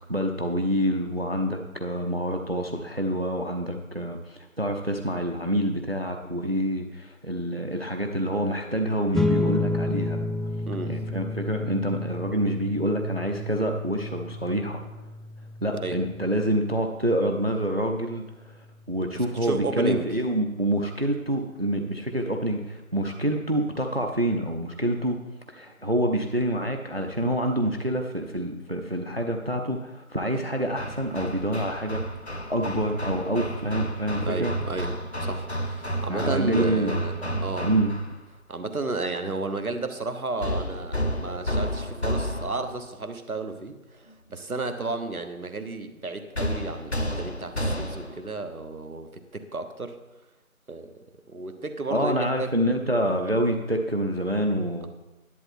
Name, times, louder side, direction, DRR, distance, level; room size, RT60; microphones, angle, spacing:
voice 1, 0.1-10.2 10.9-14.8 15.6-25.2 25.5-32.0 32.3-34.5 36.1-37.9 51.9-54.9, right 1 dB, 45° right, 4 dB, 0.7 m, -27 dB
sound 1, 9.1-19.9, left 2 dB, ahead, 0.4 m, -32 dB
voice 2, 19.1-20.1 34.2-34.9 35.2-37.7 38.5-50.0 50.7-51.0 51.3-52.5, right 3 dB, 80° right, 8 dB, 1.3 m, -33 dB
Hammer, 30.8-38.2 40.4-42.8 46.4-48.3, equal, 50° left, 0.8 m, -31 dB
11.0 x 7.9 x 4.3 m, 1.0 s
figure-of-eight pair, 180°, 43 cm